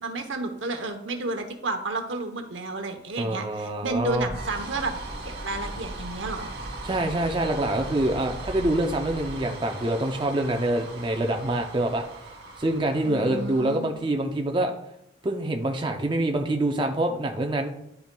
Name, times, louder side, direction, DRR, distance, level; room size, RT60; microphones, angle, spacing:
voice 1, 0.0-4.9 5.2-6.5 13.0-13.9, right 2 dB, 75° right, 6 dB, 0.9 m, -31 dB
voice 2, 3.2-4.3 6.8-12.3 12.6-14.7 15.2-17.7, right 1 dB, 25° right, 3 dB, 0.5 m, -26 dB
sound 1, 3.8-14.3, right 2 dB, 55° right, 1.2 m, -38 dB
10.5 x 5.6 x 2.3 m, 0.79 s
head